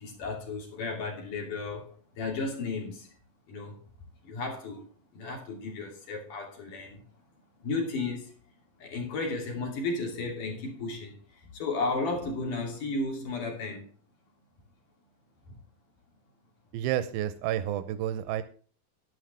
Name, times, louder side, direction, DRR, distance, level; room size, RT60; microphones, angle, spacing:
voice 1, 0.0-1.9 2.2-3.1 3.5-3.8 4.2-4.9 5.1-7.0 7.6-8.3 8.8-13.9 15.5-15.6, left 3 dB, 60° left, 4.4 m, -34 dB
voice 2, 16.7-18.4, right 12 dB, 85° right, 2.6 m, -30 dB
12.0 x 11.5 x 3.4 m
omnidirectional pair, 4.2 m